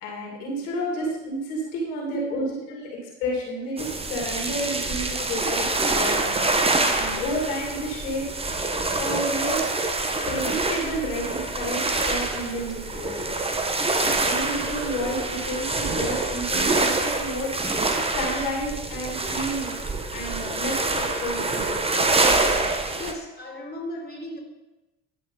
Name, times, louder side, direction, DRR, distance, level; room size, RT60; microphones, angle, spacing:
voice 1, 0.0-1.4 1.7-2.9 3.2-6.3 6.9-8.3 9.0-9.7 10.3-13.4 14.0-17.5 18.1-19.8 20.1-21.7, equal, 80° left, -1 dB, 2.3 m, -31 dB
voice 2, 2.1-2.5 19.7-19.8 23.0-24.4, left 1 dB, 25° left, -1 dB, 2.3 m, -36 dB
sound 1, 3.8-23.1, right 2 dB, 15° right, 0.9 m, -26 dB
10.5 x 5.1 x 3.8 m, 1.0 s
hypercardioid pair, 65°, 37 cm